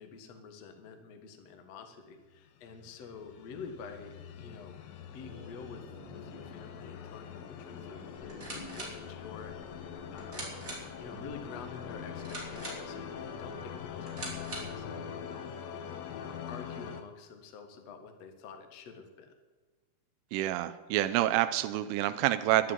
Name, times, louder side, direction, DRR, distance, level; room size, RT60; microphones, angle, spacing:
voice 1, 0.0-10.5 11.0-19.4, left 5 dB, 65° left, 5 dB, 1.6 m, -48 dB
sound 1, 2.7-17.0, left 8 dB, 85° left, 2.0 m, -43 dB
sound 2, 5.1-13.2, left 1 dB, 25° left, 6.5 m, -52 dB
sound 3, 8.2-14.9, right 1 dB, 15° right, 3.7 m, -45 dB
voice 2, 20.3-22.7, right 14 dB, 85° right, 10 dB, 3.1 m, -28 dB
11.5 x 11.0 x 9.4 m, 1.3 s
omnidirectional pair, 5.9 m